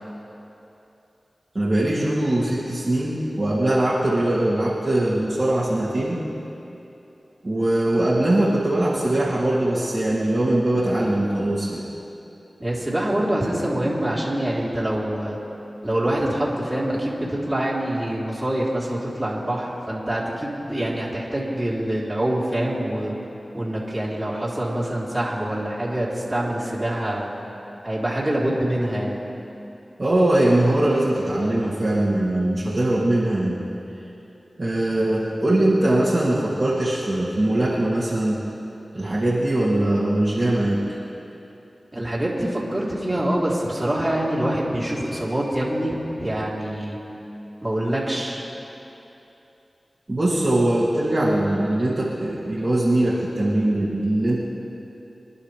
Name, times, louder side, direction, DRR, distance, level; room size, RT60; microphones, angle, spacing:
voice 1, 1.5-6.2 7.4-11.8 30.0-33.6 34.6-38.4 38.9-40.8 50.1-54.4, right 1 dB, 45° right, -9 dB, 2.8 m, -21 dB
voice 2, 12.6-15.4 15.8-23.1 23.5-27.3 27.8-29.2 41.9-47.0 47.6-48.4, right 1 dB, 25° right, -6 dB, 3.7 m, -25 dB
25.0 x 11.0 x 3.4 m, 3.0 s
cardioid pair, 45°, 0 cm